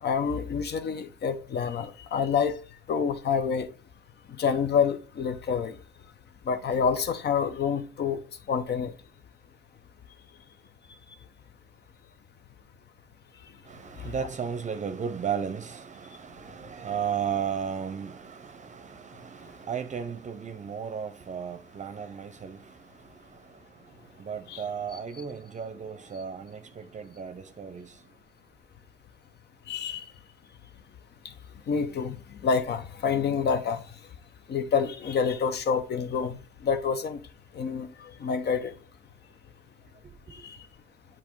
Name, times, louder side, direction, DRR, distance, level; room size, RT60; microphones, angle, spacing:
voice 1, 0.0-2.6 2.9-3.7 4.3-5.8 6.4-8.2 8.5-8.9 14.0-14.1 24.5-24.6 24.9-25.0 29.7-30.1 31.2-31.3 31.7-33.8 34.5-37.2 37.5-38.7 40.3-40.6, left 6 dB, 55° left, 0.9 m, -28 dB
voice 2, 13.7-22.6 24.2-27.9, right 7 dB, 35° right, 0.6 m, -34 dB
8.3 x 3.1 x 4.5 m
cardioid pair, 90°, 20 cm